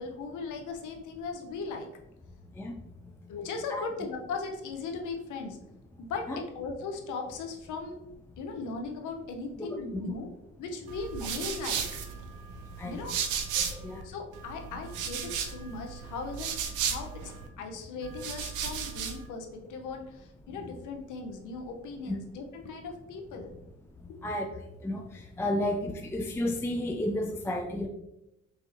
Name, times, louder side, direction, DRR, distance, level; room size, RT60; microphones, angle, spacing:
voice 1, 0.0-1.9 3.3-5.6 6.0-8.0 8.4-10.3 10.6-12.0 12.8-13.1 14.0-16.5 16.8-23.6 24.1-24.2, left 4 dB, 80° left, 3 dB, 0.8 m, -38 dB
voice 2, 9.6-10.1 12.8-13.0 13.7-14.0 22.1-22.2 24.2-24.5 24.8-25.0 25.4-27.9, left 1 dB, 10° left, 3 dB, 0.3 m, -32 dB
sound 1, 10.9-14.0 14.3-17.5 18.0-19.3, right 7 dB, 90° right, 0.6 m, -35 dB
6.0 x 2.8 x 2.7 m, 0.87 s
cardioid pair, 90°, 30 cm